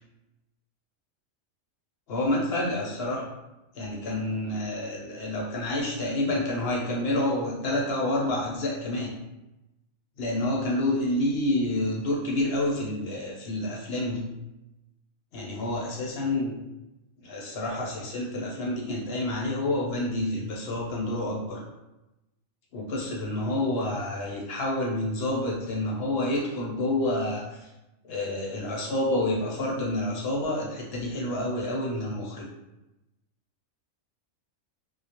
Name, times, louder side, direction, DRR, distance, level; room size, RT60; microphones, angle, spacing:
voice 1, 2.1-3.3 3.7-9.1 10.2-14.3 15.3-16.6 17.2-21.6 22.7-27.7 28.0-32.5, left 1 dB, 65° left, -3 dB, 0.6 m, -28 dB
2.2 x 2.0 x 2.7 m, 0.97 s
omnidirectional pair, 1.4 m